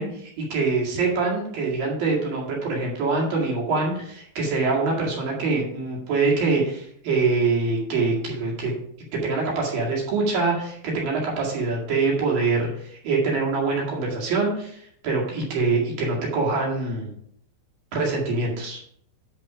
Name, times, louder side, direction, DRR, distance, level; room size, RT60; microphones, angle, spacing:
voice 1, 0.0-8.7 9.2-17.1 17.9-18.8, right 3 dB, 55° right, -3 dB, 3.5 m, -24 dB
11.0 x 5.3 x 4.9 m, 0.67 s
omnidirectional pair, 5.4 m